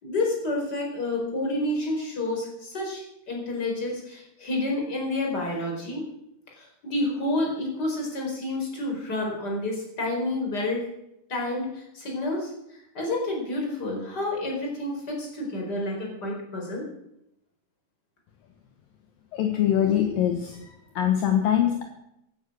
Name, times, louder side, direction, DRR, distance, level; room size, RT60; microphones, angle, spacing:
voice 1, 0.0-6.0 6.6-10.9 11.3-12.5 12.9-16.9, left 2 dB, 25° left, 0 dB, 4.9 m, -29 dB
voice 2, 19.3-21.8, left 10 dB, 70° left, 4 dB, 2.8 m, -23 dB
15.5 x 12.0 x 6.4 m, 0.82 s
omnidirectional pair, 4.5 m